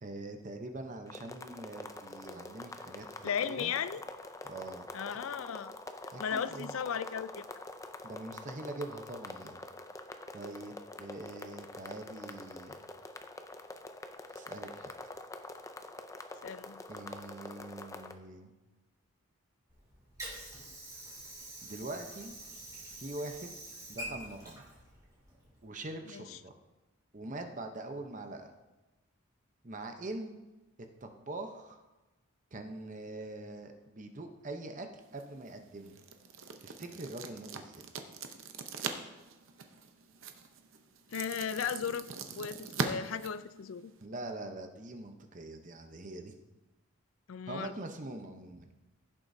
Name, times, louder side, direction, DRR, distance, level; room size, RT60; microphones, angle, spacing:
voice 1, 0.0-3.1 3.4-3.7 4.4-4.9 6.1-6.7 8.0-9.6 10.3-12.9 14.3-15.1 16.9-18.5 21.6-22.4 22.9-23.5 23.9-24.6 25.6-26.5 27.1-28.5 29.6-30.4 31.0-31.8 32.5-34.9 35.1-36.0 36.6-37.9 44.0-46.4 47.5-48.7, right 2 dB, 35° right, 5 dB, 0.8 m, -43 dB
sound 1, 1.1-18.1, left 2 dB, 15° left, 0.4 m, -46 dB
voice 2, 3.2-4.0 4.9-5.7 6.2-7.6 16.4-16.8 26.1-26.2 41.1-42.1 42.3-43.9 47.3-47.7, left 7 dB, 75° left, 15 dB, 0.4 m, -36 dB
Water / Sink (filling or washing), 19.7-25.7, right 1 dB, 15° right, 2.6 m, -46 dB
sound 2, 35.0-44.1, right 5 dB, 70° right, 0.8 m, -42 dB
16.0 x 7.3 x 2.7 m, 1.1 s
head